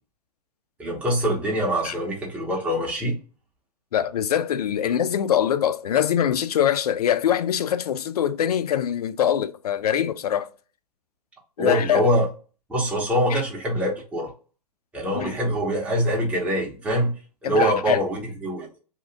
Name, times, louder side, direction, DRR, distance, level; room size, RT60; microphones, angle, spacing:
voice 1, 0.8-3.1 11.6-12.3 12.7-14.3 14.9-17.1 17.4-18.7, equal, 5° right, 0.9 m, -24 dB
voice 2, 3.9-10.5 11.6-12.1 13.3-13.4 15.1-15.4 17.4-18.0, left 9 dB, 65° left, 0.4 m, -23 dB
2.9 x 2.4 x 3.4 m
figure-of-eight pair, 120°, 21 cm